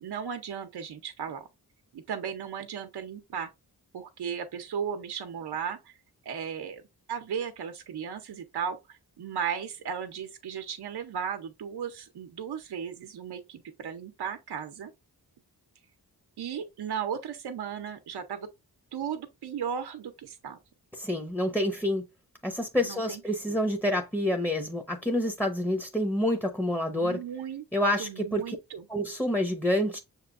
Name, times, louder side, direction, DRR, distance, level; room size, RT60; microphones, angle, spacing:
voice 1, 0.0-1.5 1.9-3.5 3.9-5.9 6.3-6.8 7.1-14.9 16.4-18.5 18.9-20.6 22.8-23.2 27.0-27.6 28.0-28.8, right 7 dB, 85° right, 0.7 m, -36 dB
voice 2, 20.9-22.0 22.4-27.2 27.7-28.6 28.9-30.0, left 1 dB, 5° left, 0.7 m, -28 dB
6.7 x 3.0 x 2.4 m
wide cardioid pair, 80°, 38 cm